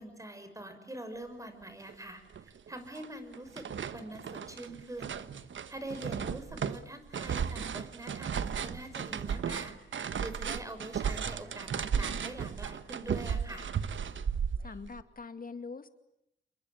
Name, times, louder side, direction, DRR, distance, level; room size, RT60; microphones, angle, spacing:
voice 1, 0.0-3.7 3.9-5.2 5.7-9.8 10.2-13.8, right 1 dB, 15° right, 8 dB, 5.9 m, -44 dB
sound 1, 1.9-2.0 2.3-3.1 3.3-15.0, right 7 dB, 80° right, 1.3 m, -35 dB
voice 2, 14.6-15.9, left 4 dB, 50° left, 10 dB, 2.3 m, -43 dB
28.5 x 22.5 x 8.8 m, 0.80 s
wide cardioid pair, 95°, 19 cm